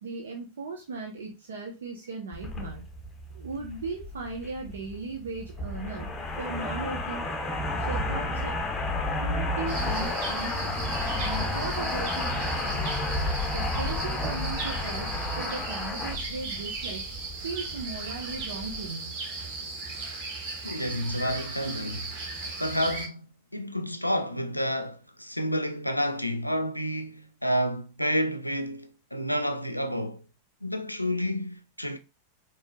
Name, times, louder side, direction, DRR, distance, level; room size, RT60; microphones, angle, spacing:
voice 1, 0.0-2.8 3.3-6.1 6.4-7.3 7.9-8.6 9.2-10.8 11.2-13.0 13.5-17.0 17.4-19.2, right 4 dB, 65° right, 0.8 m, -37 dB
sound 1, 2.3-18.9, left 2 dB, 15° left, 0.8 m, -32 dB
sound 2, 9.7-23.1, right 3 dB, 45° right, 1.2 m, -37 dB
voice 2, 20.6-22.1 22.4-30.2 30.6-32.0, equal, 90° left, 0.4 m, -30 dB
4.4 x 3.0 x 2.3 m
figure-of-eight pair, 90°, 0 cm